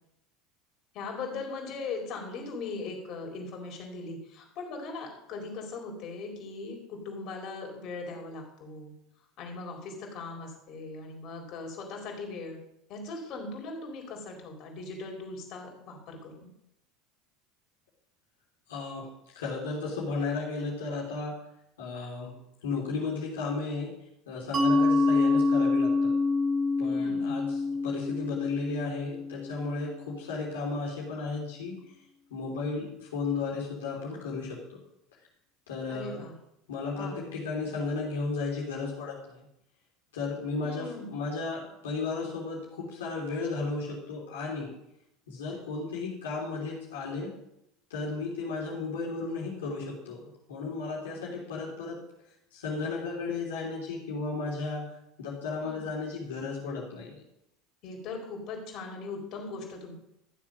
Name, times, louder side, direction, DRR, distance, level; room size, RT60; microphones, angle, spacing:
voice 1, 0.9-8.9 9.4-12.6 12.9-16.5 26.8-27.4 35.9-36.3 36.9-37.2 40.6-41.1 55.6-55.9 57.8-59.9, left 3 dB, 50° left, 1 dB, 4.4 m, -39 dB
voice 2, 18.7-21.4 21.8-22.4 22.6-23.9 24.3-26.1 26.8-31.7 32.3-34.6 35.7-36.2 36.7-39.4 40.1-44.7 45.3-47.3 47.9-52.0 52.5-54.9 55.2-57.1, left 4 dB, 80° left, -4 dB, 3.5 m, -34 dB
Mallet percussion, 24.5-29.9, left 3 dB, 40° right, 2.7 m, -26 dB
14.0 x 7.4 x 6.6 m, 0.81 s
hypercardioid pair, 80°, 0 cm